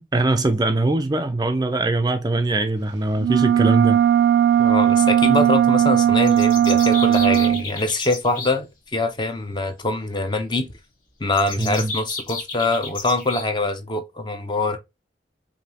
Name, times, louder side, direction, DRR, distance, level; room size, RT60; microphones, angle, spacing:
voice 1, 0.1-4.0 11.6-11.9, right 2 dB, 20° right, 0.4 m, -21 dB
sound 1, 3.2-7.6, right 10 dB, 85° right, 0.4 m, -17 dB
voice 2, 4.6-10.7 11.2-14.8, left 2 dB, 25° left, 0.6 m, -24 dB
Piano, 5.2-7.4, right 1 dB, 75° left, 2.1 m, -37 dB
sound 2, 6.2-8.5 11.3-13.5, left 4 dB, 50° left, 1.2 m, -33 dB
5.0 x 2.7 x 2.8 m
head